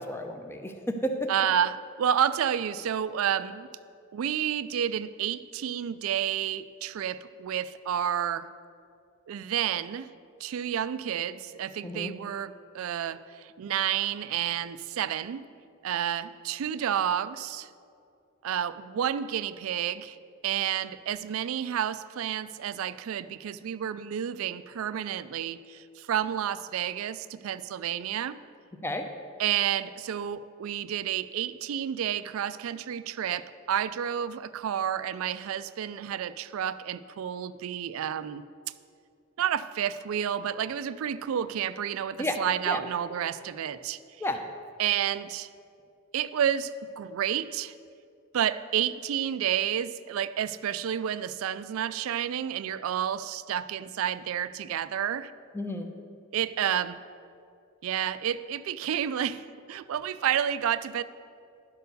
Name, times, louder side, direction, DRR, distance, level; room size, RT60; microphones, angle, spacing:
voice 1, 0.0-1.3 11.8-12.1 28.8-29.1 42.2-42.4 42.7-42.8 44.2-44.4 55.5-55.9, left 1 dB, 10° left, 5 dB, 0.5 m, -31 dB
voice 2, 1.3-3.7 4.1-8.5 9.3-10.1 10.4-15.4 15.8-17.7 18.4-20.2 20.4-28.4 29.4-38.4 39.4-44.2 44.8-45.5 46.1-47.7 48.3-55.3 56.3-57.0 57.8-61.0, right 9 dB, 70° right, 14 dB, 0.3 m, -30 dB
11.5 x 4.5 x 6.7 m, 2.4 s
head